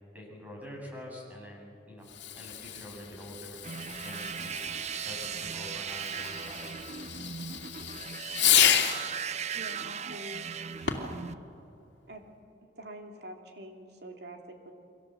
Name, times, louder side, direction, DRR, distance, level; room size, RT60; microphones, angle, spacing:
voice 1, 0.1-2.1 2.3-3.6 4.0-4.7 5.0-6.7, left 1 dB, 10° right, -1 dB, 7.0 m, -45 dB
Fireworks, 2.0-9.1 10.8-11.2, left 9 dB, 85° left, 2.5 m, -31 dB
sound 1, 3.6-11.4, right 7 dB, 40° right, 0.6 m, -38 dB
voice 2, 9.5-10.5 10.9-11.4 12.1-12.2 12.6-14.7, right 1 dB, 65° right, 3 dB, 2.9 m, -46 dB
29.0 x 24.0 x 7.7 m, 2.5 s
head